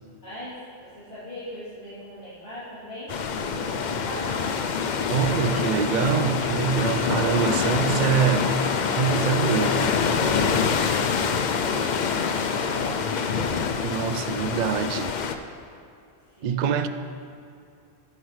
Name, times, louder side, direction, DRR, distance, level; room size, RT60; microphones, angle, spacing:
voice 1, 0.2-4.5 10.9-13.3 16.3-16.8, equal, 90° left, 3.4 m, -41 dB
sound 1, 3.1-15.3, left 5 dB, 55° left, 0.6 m, -25 dB
voice 2, 5.1-10.1 13.8-15.1 16.4-16.9, right 7 dB, 55° right, 0.5 m, -25 dB
13.5 x 9.7 x 3.2 m
omnidirectional pair, 1.1 m